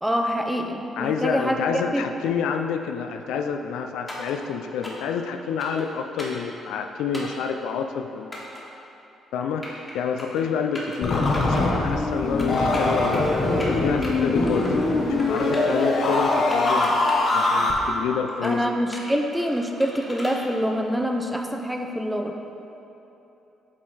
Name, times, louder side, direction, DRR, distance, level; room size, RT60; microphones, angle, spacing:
voice 1, 0.0-2.0 18.4-22.3, equal, 5° right, 3 dB, 0.5 m, -25 dB
voice 2, 1.0-8.4 9.3-13.3 13.7-14.7 15.1-17.0 17.3-18.6, left 6 dB, 90° left, 6 dB, 0.3 m, -28 dB
sound 1, 4.1-4.3 4.8-5.1 5.6-5.8 6.2-6.4 7.1-7.4 8.3-8.6 9.4-9.9 10.2-10.4 10.7-11.0 11.3-11.6 12.4-13.3 13.6-14.1 14.5-14.9 15.2-15.8 16.3-17.9 18.3-18.5 18.9-20.4, left 1 dB, 20° left, 1.4 m, -38 dB
sound 2, 11.0-17.7, left 2 dB, 50° left, 0.9 m, -22 dB
7.6 x 3.7 x 4.1 m, 3.0 s
cardioid pair, 90°, 0 cm